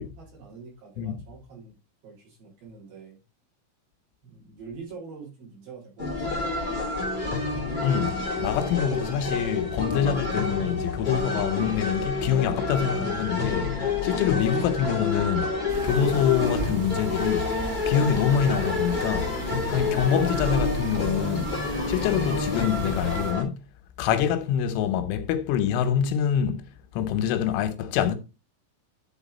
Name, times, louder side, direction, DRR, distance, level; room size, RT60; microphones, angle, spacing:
voice 1, 0.0-1.7 2.0-3.2 4.2-6.9 14.1-14.3, right 5 dB, 50° right, 4.9 m, -45 dB
sound 1, 6.0-23.4, left 3 dB, 30° left, 0.9 m, -29 dB
voice 2, 7.8-13.7 14.0-15.6 15.8-17.5 17.9-19.3 19.7-21.5 21.9-23.6 24.0-26.7 26.9-28.2, left 9 dB, 80° left, 3.2 m, -25 dB
sound 2, 15.7-23.3, right 3 dB, 85° right, 4.5 m, -35 dB
10.5 x 4.6 x 4.1 m
omnidirectional pair, 5.6 m